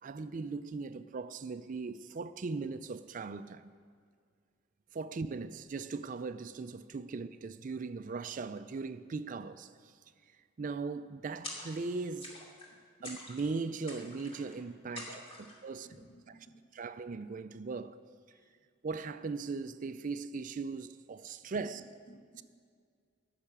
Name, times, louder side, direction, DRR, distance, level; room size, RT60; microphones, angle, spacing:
voice 1, 0.0-3.7 4.9-9.9 10.6-12.3 13.0-15.9 16.7-18.0 18.8-21.8, right 4 dB, 40° right, 0.4 m, -39 dB
sound 1, 11.4-11.9 12.2-12.7 13.0-13.5 13.9-14.5 15.0-15.6, left 1 dB, 30° left, 2.4 m, -46 dB
voice 2, 15.0-16.6 18.3-18.5 21.7-21.8 22.1-22.4, right 1 dB, 55° left, 1.3 m, -59 dB
15.0 x 6.7 x 8.6 m
head